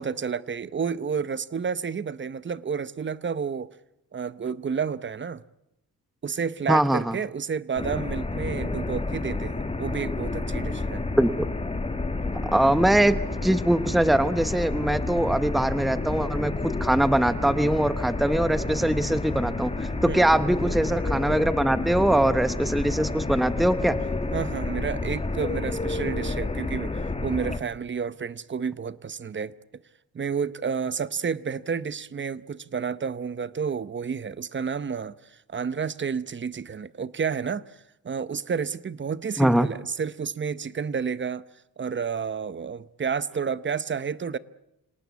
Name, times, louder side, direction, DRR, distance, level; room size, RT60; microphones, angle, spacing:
voice 1, 0.0-3.7 4.1-5.4 6.2-11.0 20.1-20.3 24.3-29.5 30.1-37.6 38.0-41.4 41.8-44.4, right 6 dB, 30° right, 0.8 m, -30 dB
voice 2, 6.7-7.2 11.2-11.5 12.4-24.0 39.4-39.7, right 1 dB, ahead, 0.9 m, -22 dB
sound 1, 7.8-27.6, left 2 dB, 15° left, 1.8 m, -30 dB
26.5 x 18.5 x 8.2 m
cardioid pair, 120°, 35 cm